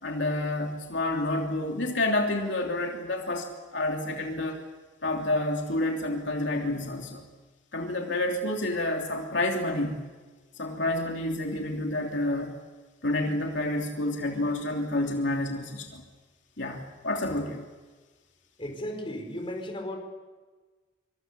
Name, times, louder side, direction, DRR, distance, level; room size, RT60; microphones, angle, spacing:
voice 1, 0.0-4.6 5.0-7.2 7.7-10.0 10.6-12.5 13.0-16.0 16.6-17.6, left 1 dB, 70° left, 1 dB, 3.1 m, -29 dB
voice 2, 18.6-20.0, left 1 dB, 30° left, 4 dB, 5.0 m, -35 dB
27.0 x 25.5 x 7.0 m, 1.3 s
head